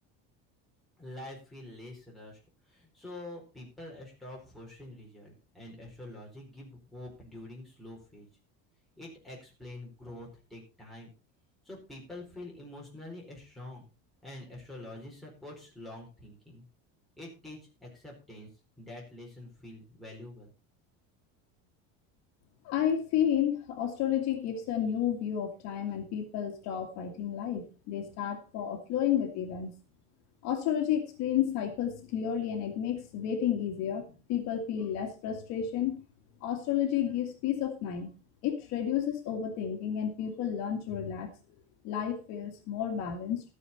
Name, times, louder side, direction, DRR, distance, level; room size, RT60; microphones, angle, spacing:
voice 1, 1.0-2.4 2.7-8.3 9.0-11.1 11.6-13.9 14.2-16.6 17.2-18.5 18.8-20.5, left 1 dB, ahead, -3 dB, 4.3 m, -46 dB
voice 2, 22.6-29.7 30.4-36.0 36.4-38.1 38.4-41.3 41.8-43.4, left 9 dB, 55° left, 5 dB, 2.1 m, -31 dB
13.0 x 9.8 x 4.2 m, 0.32 s
cardioid pair, 175°, 32 cm